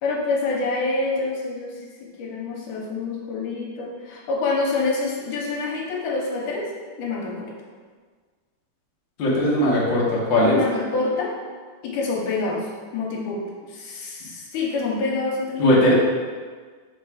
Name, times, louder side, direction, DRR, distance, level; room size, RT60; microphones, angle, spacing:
voice 1, 0.0-6.7 7.0-7.5 10.5-11.3 11.8-12.7 12.9-15.9, left 3 dB, 80° left, -2 dB, 2.3 m, -27 dB
voice 2, 9.2-10.6 15.6-15.9, left 1 dB, 55° left, -5 dB, 1.3 m, -18 dB
4.7 x 4.3 x 4.7 m, 1.5 s
omnidirectional pair, 3.7 m